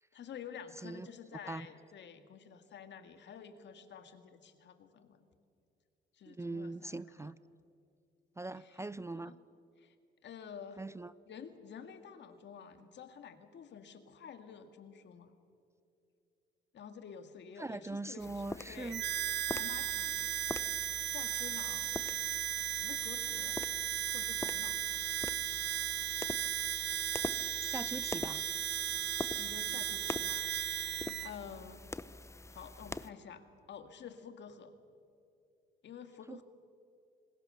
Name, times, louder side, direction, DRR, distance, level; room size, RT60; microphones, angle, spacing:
voice 1, 0.1-5.2 6.1-7.3 8.6-8.7 9.1-9.3 9.8-10.0 10.2-10.8 11.3-15.3 16.7-18.4 18.7-19.0 19.5-20.3 21.0-21.9 22.7-23.6 24.1-24.8 29.4-31.9 32.5-34.7 35.8-36.4, left 7 dB, 65° left, 2.1 m, -50 dB
voice 2, 6.3-7.4 8.4-9.4 10.8-11.1 17.6-19.0 27.6-28.4 36.3-36.4, right 2 dB, 15° right, 0.4 m, -41 dB
sound 1, 18.2-33.1, left 2 dB, 15° left, 0.8 m, -45 dB
Harmonica, 18.9-31.3, right 12 dB, 60° right, 0.8 m, -36 dB
27.5 x 20.0 x 6.8 m
cardioid pair, 90°, 20 cm